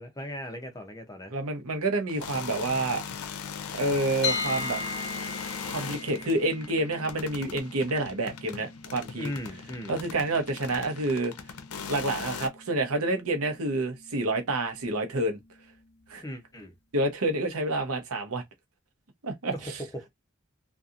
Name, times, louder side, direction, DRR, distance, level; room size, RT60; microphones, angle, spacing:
voice 1, 0.0-1.3 9.2-10.0 16.2-16.7 19.5-20.1, equal, 15° left, 0.6 m, -38 dB
voice 2, 1.3-3.0 3.7-4.8 5.6-9.3 9.9-11.3 11.9-15.4 16.1-16.2 16.9-18.4 19.2-19.8, right 2 dB, 80° right, 0.8 m, -28 dB
sound 1, 2.1-12.5, left 6 dB, 85° left, 0.5 m, -39 dB
sound 2, 4.2-16.1, left 4 dB, 50° left, 1.0 m, -40 dB
2.7 x 2.4 x 2.4 m
head